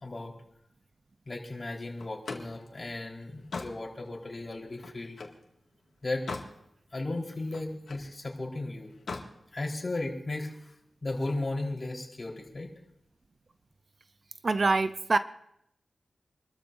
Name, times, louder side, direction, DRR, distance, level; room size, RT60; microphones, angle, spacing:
voice 1, 0.0-0.3 1.3-5.2 6.0-6.3 6.9-8.9 9.5-10.7 11.0-12.7, left 2 dB, 40° left, -2 dB, 4.1 m, -35 dB
Slam, 2.0-5.4 5.9-6.6 7.0-8.1 8.9-9.3, left 4 dB, 80° left, 2.1 m, -41 dB
voice 2, 14.4-15.2, right 3 dB, 50° right, 11 dB, 0.6 m, -24 dB
28.0 x 13.5 x 2.7 m, 0.76 s
wide cardioid pair, 80°, 0 cm